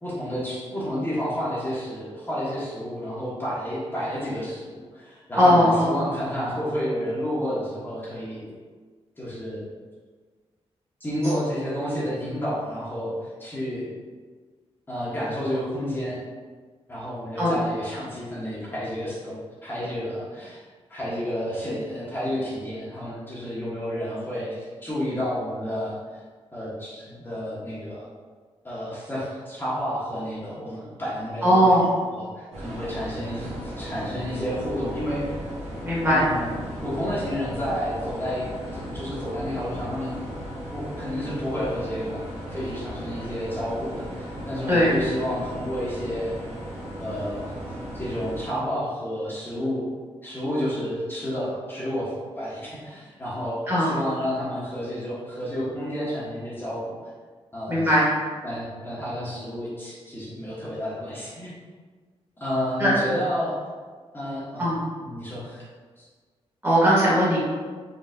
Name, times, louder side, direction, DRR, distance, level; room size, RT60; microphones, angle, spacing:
voice 1, 0.0-8.4 9.2-9.7 11.0-13.1 13.4-13.9 14.9-16.2 16.9-19.4 19.6-20.6 20.9-26.2 26.5-28.0 28.6-35.4 36.1-40.1 40.7-42.2 42.5-46.4 47.0-47.5 47.9-49.9 50.2-57.0 57.5-58.0 58.4-61.6 62.4-63.6 64.1-64.7 65.0-65.7, equal, 20° left, -9 dB, 1.0 m, -30 dB
voice 2, 5.4-5.9 17.4-17.6 31.4-31.8 35.8-36.2 44.7-44.9 53.7-53.9 57.7-58.0 62.8-62.9 64.6-64.8 66.6-67.4, equal, 25° right, -8 dB, 1.4 m, -19 dB
sound 1, 32.5-48.5, equal, 75° right, 1.1 m, -36 dB
4.1 x 3.4 x 2.5 m, 1.5 s
wide cardioid pair, 135°, 11 cm